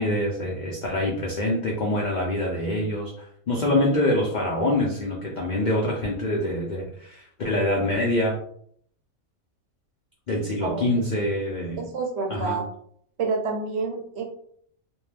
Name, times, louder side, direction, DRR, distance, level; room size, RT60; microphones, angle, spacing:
voice 1, 0.0-8.4 10.3-11.8 12.3-12.6, left 1 dB, 85° left, -2 dB, 0.4 m, -25 dB
voice 2, 11.8-12.6 13.2-14.2, right 4 dB, 60° right, 2 dB, 0.8 m, -28 dB
2.7 x 2.1 x 3.2 m, 0.63 s
omnidirectional pair, 1.5 m